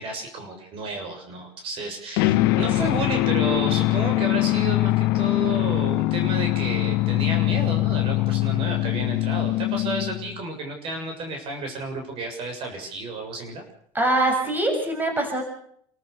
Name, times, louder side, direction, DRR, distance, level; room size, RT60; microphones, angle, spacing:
voice 1, 0.0-13.6, right 2 dB, 55° right, 3 dB, 7.0 m, -32 dB
sound 1, 2.2-10.4, left 18 dB, 90° left, 1.2 m, -22 dB
voice 2, 13.9-15.4, right 2 dB, 15° right, 4 dB, 6.5 m, -23 dB
29.0 x 14.5 x 6.9 m, 0.65 s
supercardioid pair, 110°, 11 cm